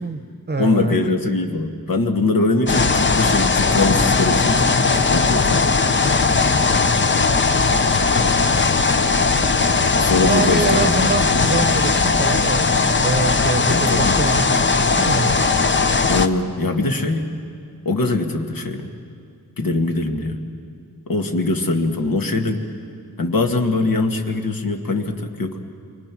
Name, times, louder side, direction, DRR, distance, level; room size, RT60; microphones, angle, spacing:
voice 1, 0.0-0.9 7.6-8.1 10.2-15.4, right 3 dB, 25° right, 9 dB, 1.0 m, -25 dB
voice 2, 0.6-5.7 10.0-11.5 13.7-14.2 16.1-17.3 17.9-18.9 19.6-20.4 21.1-22.6 23.2-25.6, left 3 dB, 65° left, 3 dB, 2.0 m, -22 dB
sound 1, 2.7-16.3, left 4 dB, 30° left, 0.8 m, -18 dB
28.0 x 24.5 x 6.2 m, 2.3 s
wide cardioid pair, 130°, 37 cm